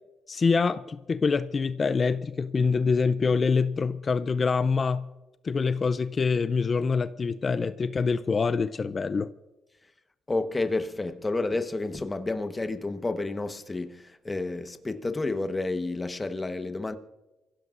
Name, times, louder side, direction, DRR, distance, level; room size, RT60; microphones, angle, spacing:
voice 1, 0.3-5.1 5.4-9.3, left 5 dB, 35° left, 0.5 m, -25 dB
voice 2, 10.3-17.0, left 2 dB, 20° left, 1.2 m, -30 dB
25.5 x 16.0 x 2.6 m
cardioid pair, 90°, 0 cm